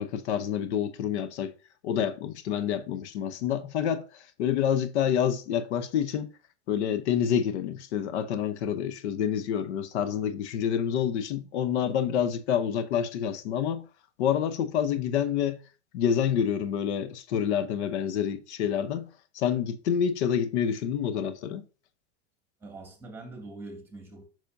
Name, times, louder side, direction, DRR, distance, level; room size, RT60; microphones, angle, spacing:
voice 1, 0.0-1.5 1.8-6.3 6.7-13.8 14.2-15.6 15.9-19.1 19.3-21.6, left 9 dB, 80° left, 0.8 m, -28 dB
voice 2, 22.6-24.2, right 2 dB, 5° right, 2.2 m, -43 dB
6.9 x 6.0 x 2.6 m
supercardioid pair, 135°, 33 cm